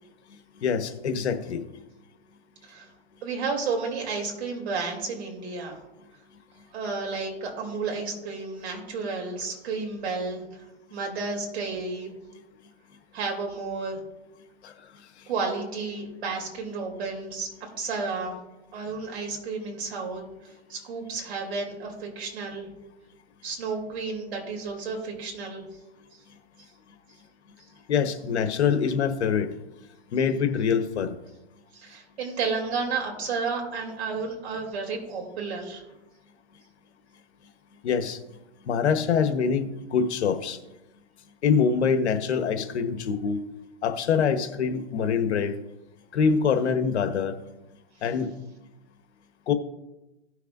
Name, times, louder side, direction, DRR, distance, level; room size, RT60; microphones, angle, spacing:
voice 1, 0.6-1.6 14.6-14.7 27.9-29.5 30.1-31.1 37.8-38.2 38.7-40.6 41.4-43.4 43.8-45.5 46.1-47.3 48.0-48.3 49.5-49.6, left 6 dB, 65° left, 8 dB, 1.2 m, -24 dB
voice 2, 3.2-5.8 6.7-10.4 10.9-12.1 13.1-14.0 15.3-18.3 18.7-20.2 20.7-22.7 23.4-25.6 31.7-35.8, right 4 dB, 60° right, 1 dB, 3.2 m, -32 dB
17.0 x 6.5 x 2.6 m, 0.99 s
hypercardioid pair, 150°, 36 cm